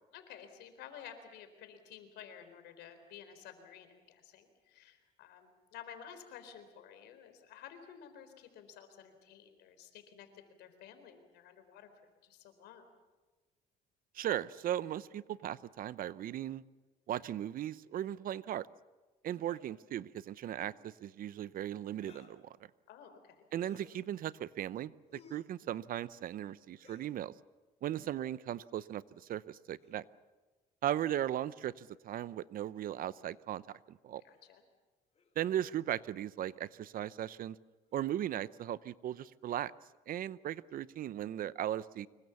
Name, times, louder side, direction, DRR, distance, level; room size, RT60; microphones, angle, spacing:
voice 1, 0.1-11.9 12.2-12.9 22.9-23.5 34.2-34.6, left 8 dB, 80° left, 8 dB, 4.1 m, -53 dB
voice 2, 14.1-16.6 17.1-18.7 19.2-22.4 23.5-27.3 27.8-30.0 30.8-33.6 33.9-34.2 35.4-37.6 37.9-39.7 40.1-42.1, right 11 dB, 60° right, 18 dB, 0.7 m, -37 dB
sound 1, 19.4-19.6 20.5-20.8 22.0-22.4 23.5-24.0 25.1-25.5 26.8-27.2 28.5-28.7 29.8-30.0 31.0-31.5 33.1-33.3 34.3-34.4 35.1-35.4 36.2-36.3 37.9-38.3, left 5 dB, 40° left, 3.6 m, -61 dB
25.5 x 23.0 x 7.1 m, 1.2 s
cardioid pair, 110°, 17 cm